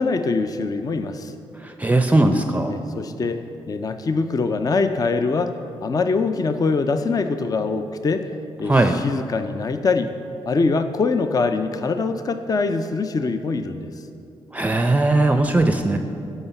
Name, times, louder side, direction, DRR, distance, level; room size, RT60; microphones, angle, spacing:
voice 1, 0.0-1.3 2.7-8.3 8.6-10.1 10.4-13.9, left 4 dB, 35° left, 8 dB, 0.5 m, -23 dB
voice 2, 1.6-2.7 8.6-9.0 14.5-16.0, right 2 dB, 15° right, 6 dB, 0.5 m, -18 dB
11.0 x 5.5 x 7.0 m, 2.8 s
cardioid pair, 75°, 10 cm